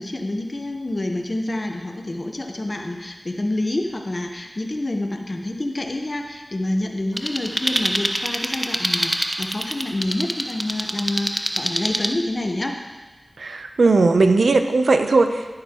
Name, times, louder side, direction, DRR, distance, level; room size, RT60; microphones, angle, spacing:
voice 1, 0.0-12.8, left 1 dB, 45° left, 3 dB, 1.1 m, -27 dB
sound 1, 7.2-12.1, right 1 dB, 15° right, 0.7 m, -26 dB
voice 2, 13.4-15.5, right 3 dB, 80° right, 7 dB, 0.7 m, -18 dB
11.5 x 11.0 x 3.0 m, 1.2 s
cardioid pair, 40°, 0 cm